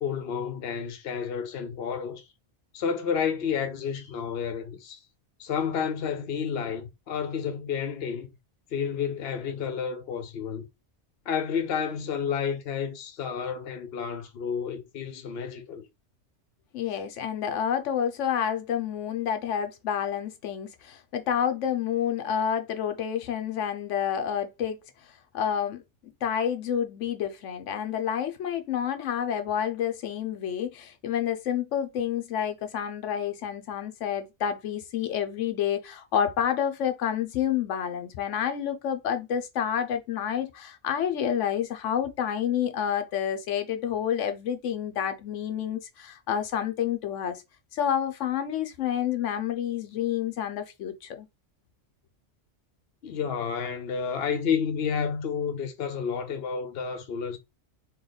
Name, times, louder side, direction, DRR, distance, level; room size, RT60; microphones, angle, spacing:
voice 1, 0.0-2.2 2.7-5.0 5.4-8.3 8.7-10.6 11.3-15.9 16.9-17.0 53.0-57.4, left 7 dB, 60° left, 1.0 m, -30 dB
voice 2, 16.7-25.8 26.2-47.4 47.7-51.3, left 9 dB, 90° left, 1.0 m, -29 dB
3.2 x 3.0 x 3.9 m
omnidirectional pair, 1.2 m